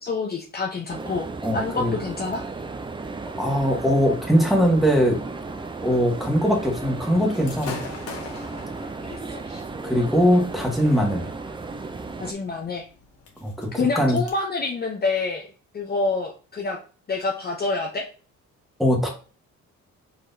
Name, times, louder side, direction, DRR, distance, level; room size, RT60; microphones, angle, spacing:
voice 1, 0.0-1.3 1.5-2.4 9.0-9.6 12.2-12.9 13.8-15.5 15.7-16.8 17.1-18.1, left 3 dB, 30° left, 1 dB, 0.7 m, -27 dB
sound 1, 0.9-12.3, right 3 dB, 15° right, 0.5 m, -35 dB
voice 2, 1.4-1.9 3.4-5.2 5.8-7.8 9.8-11.3 13.4-14.2 18.8-19.1, equal, ahead, -1 dB, 1.4 m, -21 dB
Gunshot gunfire / Fireworks, 7.3-14.3, left 4 dB, 50° left, 1.3 m, -43 dB
4.8 x 4.1 x 2.7 m, 0.37 s
cardioid pair, 130°, 30 cm